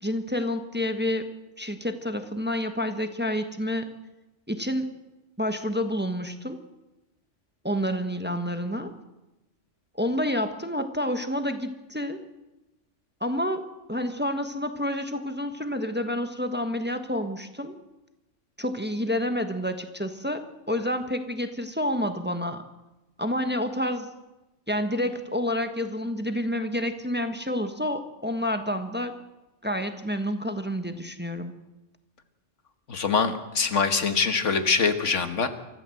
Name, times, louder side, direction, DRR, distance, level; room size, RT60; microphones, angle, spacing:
voice 1, 0.0-1.3 1.6-3.9 4.5-4.9 5.4-6.6 7.6-8.9 10.0-12.2 13.2-13.6 13.9-17.7 18.6-22.6 23.2-24.1 24.7-29.2 29.6-31.5, left 1 dB, 10° right, 7 dB, 1.3 m, -29 dB
voice 2, 32.9-35.5, left 5 dB, 85° left, 8 dB, 1.8 m, -24 dB
24.5 x 14.0 x 7.8 m, 1.0 s
omnidirectional pair, 1.2 m